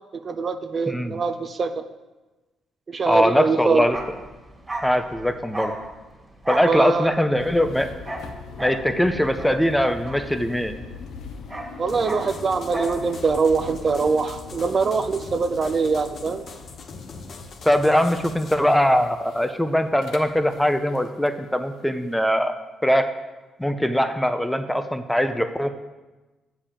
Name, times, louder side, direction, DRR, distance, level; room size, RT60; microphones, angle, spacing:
voice 1, 0.1-1.8 2.9-3.8 6.6-7.1 11.8-16.4, right 4 dB, 45° right, 8 dB, 0.5 m, -23 dB
voice 2, 0.9-1.2 3.1-4.0 4.8-5.8 6.5-7.9 8.6-10.7 17.6-22.6 22.8-23.1 23.6-25.7, equal, 5° left, 9 dB, 0.6 m, -21 dB
Bark, 3.8-10.8 11.1-13.0 13.3-13.5, right 1 dB, 15° right, 1.8 m, -34 dB
sound 1, 7.4-21.3, left 4 dB, 80° left, 0.8 m, -42 dB
sound 2, 11.9-18.5, left 4 dB, 55° left, 0.9 m, -42 dB
7.3 x 4.9 x 7.2 m, 1.1 s
cardioid pair, 90°, 0 cm